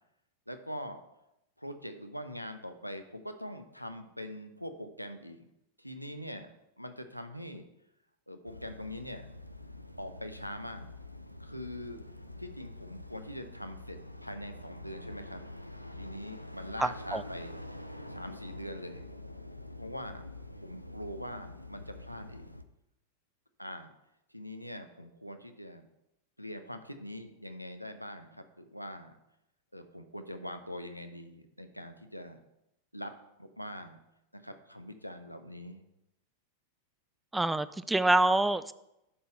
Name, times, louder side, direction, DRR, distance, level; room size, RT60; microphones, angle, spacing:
voice 1, 0.5-1.0 1.6-5.4 5.8-6.5 6.8-7.7 8.3-9.3 10.0-10.9 11.4-12.0 12.4-15.4 16.0-17.6 18.1-19.0 19.8-20.2 20.6-22.5 23.6-23.9 24.3-25.8 26.4-29.2 29.7-32.4 32.9-33.1 33.4-34.0 34.3-35.8, equal, 90° left, 7 dB, 0.8 m, -43 dB
sound 1, 8.4-22.6, left 1 dB, 90° right, 0.5 m, -46 dB
voice 2, 16.8-17.2 37.3-38.7, right 2 dB, 5° right, 15 dB, 0.3 m, -26 dB
11.0 x 5.6 x 4.4 m, 0.85 s
figure-of-eight pair, 90°, 0 cm